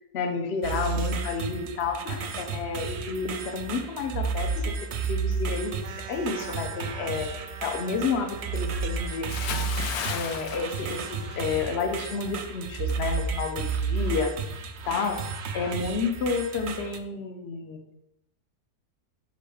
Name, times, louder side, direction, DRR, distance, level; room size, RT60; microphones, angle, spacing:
voice 1, 0.1-4.7 5.0-5.8 6.1-7.3 7.6-9.3 10.1-14.3 14.8-15.2 15.5-18.0, left 4 dB, 55° left, 5 dB, 0.8 m, -30 dB
sound 1, 0.6-17.0, right 5 dB, 65° right, 0.7 m, -32 dB
sound 2, 5.8-11.6, right 5 dB, 90° right, 1.2 m, -45 dB
Bathtub (filling or washing) / Splash splatter, 9.3-11.7 12.0-12.3, left 7 dB, 75° left, 1.1 m, -34 dB
5.5 x 3.9 x 4.9 m, 0.85 s
omnidirectional pair, 1.7 m